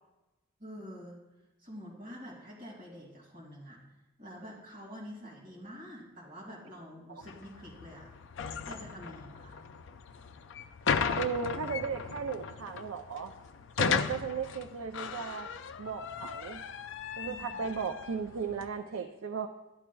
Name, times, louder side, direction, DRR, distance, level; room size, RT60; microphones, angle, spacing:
voice 1, 0.6-1.2 1.6-3.8 4.2-8.1 8.6-9.6 17.3-17.6, equal, 40° right, -4 dB, 2.4 m, -47 dB
sound 1, 7.2-18.7, left 6 dB, 65° left, 0.4 m, -36 dB
voice 2, 11.2-13.3 13.8-15.5 15.8-16.6 17.2-19.5, right 6 dB, 80° right, 5 dB, 0.4 m, -36 dB
12.0 x 8.6 x 2.3 m, 1.0 s
head